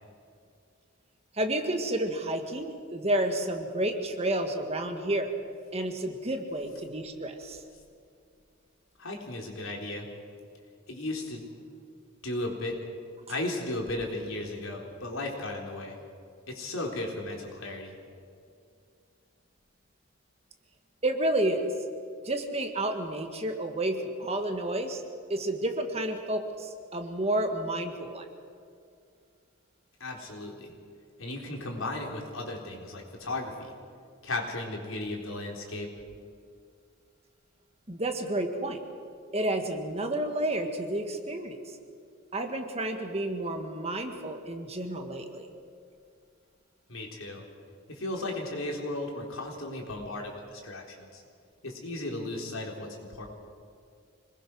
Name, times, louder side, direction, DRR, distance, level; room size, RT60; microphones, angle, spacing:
voice 1, 1.3-5.3 5.7-7.6 21.0-21.7 22.2-25.0 25.3-28.3 37.9-38.8 39.3-41.8 42.3-45.5, right 1 dB, 30° right, 5 dB, 1.7 m, -30 dB
voice 2, 9.0-10.1 10.9-11.4 12.2-12.8 13.3-16.0 16.5-18.0 30.0-30.7 31.2-33.7 34.2-35.9 46.9-47.4 47.9-51.2 51.6-53.3, left 2 dB, 75° left, 0 dB, 4.0 m, -35 dB
26.5 x 20.5 x 6.3 m, 2.3 s
head